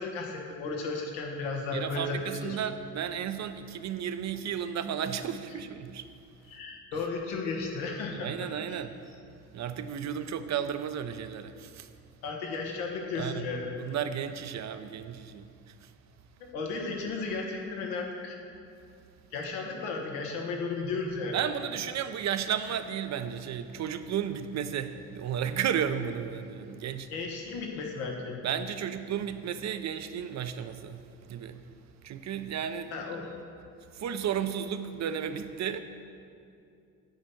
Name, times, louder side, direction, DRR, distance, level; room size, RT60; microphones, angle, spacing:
voice 1, 0.0-2.6 6.5-8.3 12.2-13.7 16.4-18.3 19.3-21.4 27.1-28.4 32.9-33.4, left 4 dB, 85° left, 1 dB, 1.3 m, -34 dB
voice 2, 1.7-6.0 8.1-8.9 9.5-11.9 13.1-13.5 13.8-15.5 15.8-15.9 21.3-27.1 28.4-31.6 32.0-32.9 33.9-35.8, right 8 dB, 45° right, 10 dB, 0.6 m, -33 dB
9.1 x 4.2 x 7.1 m, 2.5 s
supercardioid pair, 65°, 37 cm